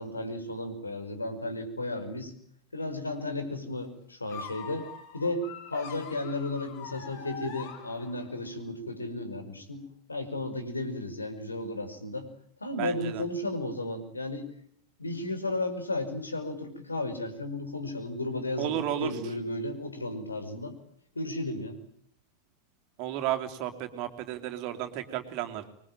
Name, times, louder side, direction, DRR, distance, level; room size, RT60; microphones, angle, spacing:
voice 1, 0.0-2.3 2.7-4.9 5.1-9.8 10.1-12.3 12.6-14.5 15.0-20.7 21.2-21.8, left 2 dB, 80° left, 9 dB, 5.3 m, -34 dB
sound 1, 4.3-8.4, left 6 dB, 45° left, 4.9 m, -43 dB
voice 2, 12.8-13.2 18.6-19.1 23.0-25.6, right 12 dB, 45° right, 6 dB, 3.3 m, -33 dB
26.5 x 23.0 x 9.1 m, 0.68 s
figure-of-eight pair, 90°, 0 cm